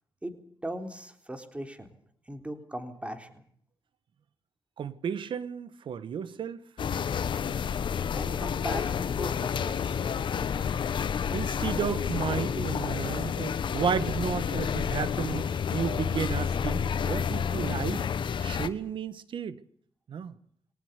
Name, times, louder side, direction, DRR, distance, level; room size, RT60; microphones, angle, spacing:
voice 1, 0.6-1.9 2.3-3.3 8.1-10.0, right 1 dB, 15° right, 3.7 m, -38 dB
voice 2, 4.8-6.6 11.3-18.1 18.4-19.6 20.1-20.3, right 7 dB, 80° right, 1.5 m, -33 dB
sound 1, 6.8-18.7, left 7 dB, 75° left, 1.5 m, -30 dB
23.0 x 18.5 x 8.2 m
cardioid pair, 75°, 8 cm